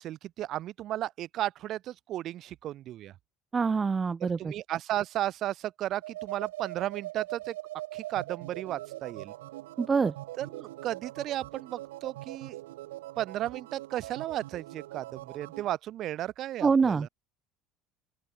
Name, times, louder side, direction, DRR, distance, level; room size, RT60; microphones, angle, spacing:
voice 1, 0.0-3.1 4.2-7.6 7.9-9.3 10.4-12.6 13.2-17.1, right 13 dB, 55° right, 5.4 m, -34 dB
voice 2, 3.5-4.5 9.8-10.1 16.6-17.1, right 5 dB, 25° right, 0.4 m, -25 dB
sound 1, 5.9-15.7, right 17 dB, 80° right, 1.3 m, -42 dB
open air
hypercardioid pair, 70°, 0 cm